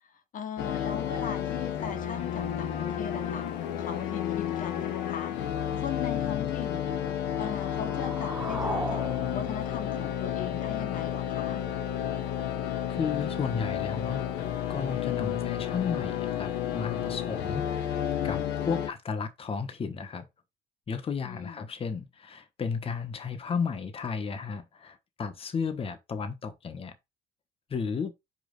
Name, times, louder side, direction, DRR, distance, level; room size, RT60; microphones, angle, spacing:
voice 1, 0.0-5.3 5.8-6.9 7.4-11.6 21.2-21.7, left 7 dB, 50° left, 1.3 m, -39 dB
sound 1, 0.6-18.9, left 10 dB, 85° left, 1.4 m, -31 dB
sound 2, 7.0-11.0, right 2 dB, 10° right, 1.0 m, -38 dB
voice 2, 12.9-14.3 14.7-20.3 20.9-26.9 27.7-28.1, left 5 dB, 35° left, 1.3 m, -33 dB
5.3 x 5.1 x 5.3 m
cardioid pair, 110°, 17 cm